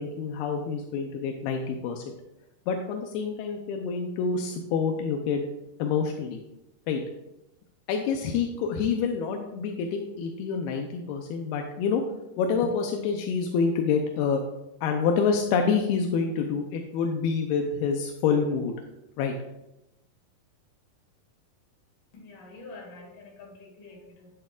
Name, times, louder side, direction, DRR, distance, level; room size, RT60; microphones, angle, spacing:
voice 1, 0.0-2.0 2.7-5.5 5.8-6.4 6.9-7.0 7.9-12.0 12.4-14.4 14.8-18.7 19.2-19.3, left 5 dB, 85° left, 2 dB, 2.7 m, -27 dB
voice 2, 22.1-24.3, left 3 dB, 60° left, -1 dB, 3.8 m, -46 dB
10.5 x 8.7 x 2.4 m, 0.88 s
omnidirectional pair, 4.4 m